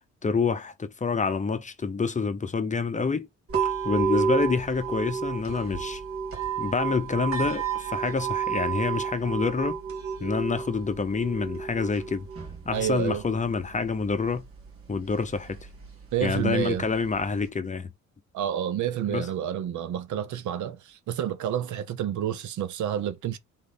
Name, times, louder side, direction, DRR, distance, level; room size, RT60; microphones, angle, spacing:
voice 1, 0.2-3.3 3.8-6.0 6.6-9.8 10.2-12.3 12.7-14.4 14.9-15.6 16.2-17.9 19.1-19.3, left 4 dB, 25° left, 0.7 m, -27 dB
sound 1, 3.5-17.5, right 7 dB, 50° right, 2.4 m, -32 dB
voice 2, 12.7-13.2 16.1-16.8 18.3-23.4, right 10 dB, 75° right, 0.8 m, -29 dB
3.8 x 3.2 x 4.1 m
cardioid pair, 90°, 30 cm